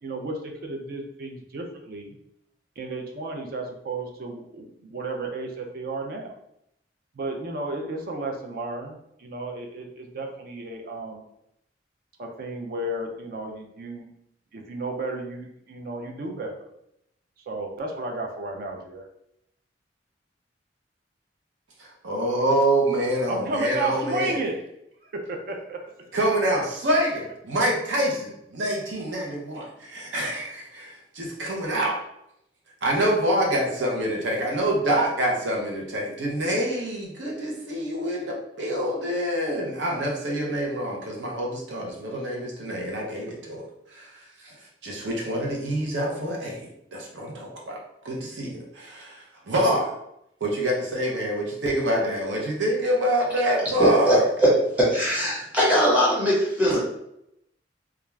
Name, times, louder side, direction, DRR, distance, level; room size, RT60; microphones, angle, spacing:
voice 1, 0.0-2.2 2.8-6.3 7.1-11.2 12.2-14.1 14.5-16.6 17.5-19.1 23.3-24.6 25.0-25.9, right 2 dB, 55° right, 2 dB, 0.4 m, -33 dB
voice 2, 21.8-24.3 26.1-32.0 32.8-43.6 43.9-44.5 44.8-47.8 48.0-49.9 50.4-54.2, right 1 dB, 85° right, -2 dB, 0.7 m, -26 dB
voice 3, 53.8-54.5 54.8-56.8, equal, 10° right, -6 dB, 1.0 m, -20 dB
2.3 x 2.3 x 3.1 m, 0.79 s
head